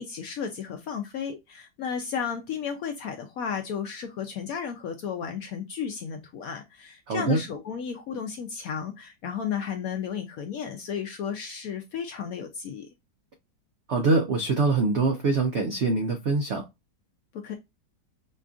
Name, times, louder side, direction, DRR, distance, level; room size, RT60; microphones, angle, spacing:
voice 1, 0.0-12.9 17.3-17.5, left 7 dB, 70° left, 0.8 m, -33 dB
voice 2, 7.1-7.4 13.9-16.6, right 3 dB, 80° right, 0.6 m, -24 dB
5.1 x 2.3 x 2.4 m
omnidirectional pair, 1.9 m